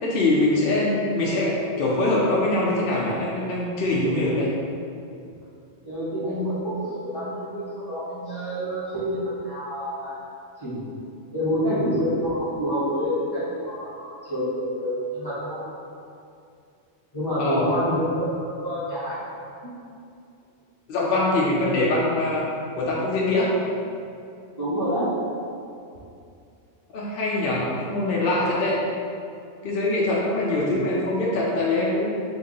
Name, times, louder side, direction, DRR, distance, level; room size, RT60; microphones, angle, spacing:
voice 1, 0.0-4.5 17.4-17.7 20.9-22.5 22.8-23.5 26.9-28.8 29.6-32.2, left 2 dB, 60° left, -5 dB, 0.7 m, -23 dB
voice 2, 5.8-10.2 10.6-10.8 11.3-15.6 17.1-18.3 18.6-19.2 24.6-25.1 30.6-30.7, equal, 20° left, -14 dB, 1.1 m, -27 dB
3.0 x 2.7 x 3.7 m, 2.5 s
omnidirectional pair, 1.2 m